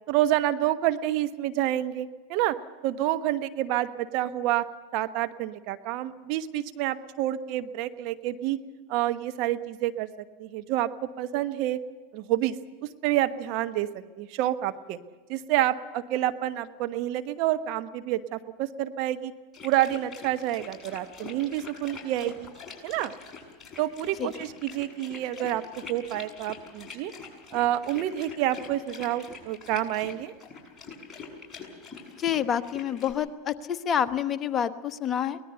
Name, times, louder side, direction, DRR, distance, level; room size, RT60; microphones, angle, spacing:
voice 1, 0.1-2.5 2.8-4.6 4.9-8.6 8.9-10.1 10.4-10.9 11.2-11.8 12.1-12.5 13.0-15.0 15.3-19.3 19.6-22.5 22.8-23.1 23.8-25.6 25.9-27.1 27.5-30.3, right 13 dB, 55° right, 9 dB, 1.2 m, -28 dB
sound 1, 19.5-33.1, left 5 dB, 15° left, 7.1 m, -44 dB
voice 2, 32.2-35.4, left 9 dB, 30° left, 10 dB, 1.1 m, -28 dB
23.5 x 19.0 x 6.9 m, 1.3 s
hypercardioid pair, 95°, 0 cm